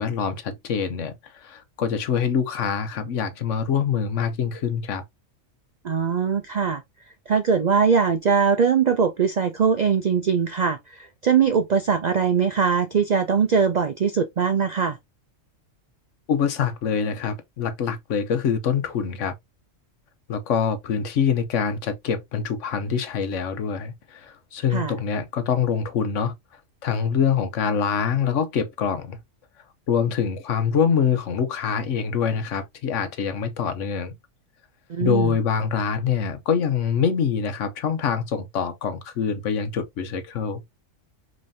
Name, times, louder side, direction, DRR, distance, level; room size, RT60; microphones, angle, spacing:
voice 1, 0.0-5.0 16.3-19.3 20.3-26.3 26.8-29.2 29.9-34.1 35.0-40.6, left 7 dB, 70° left, 1.1 m, -25 dB
voice 2, 5.8-6.8 7.3-15.0 24.7-24.9 34.9-35.4, right 6 dB, 65° right, 0.4 m, -21 dB
5.4 x 3.3 x 2.7 m
omnidirectional pair, 1.3 m